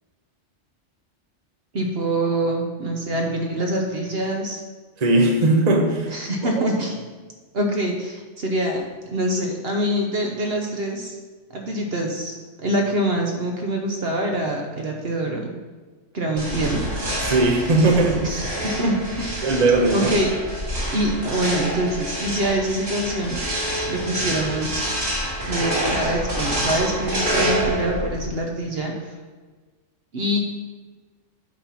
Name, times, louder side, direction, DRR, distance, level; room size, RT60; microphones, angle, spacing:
voice 1, 1.7-4.6 6.1-6.9 7.5-11.1 11.5-15.5 16.1-16.9 18.2-19.5 19.9-20.3 20.9-23.4 23.9-24.9 25.5-28.9 30.1-30.4, right 1 dB, 55° right, 1 dB, 1.2 m, -25 dB
voice 2, 5.0-6.2 17.3-18.4 19.4-20.1, right 2 dB, 35° right, 2 dB, 1.0 m, -18 dB
sound 1, 16.4-28.3, right 1 dB, 85° right, 3.3 m, -27 dB
9.2 x 4.4 x 5.7 m, 1.3 s
omnidirectional pair, 1.2 m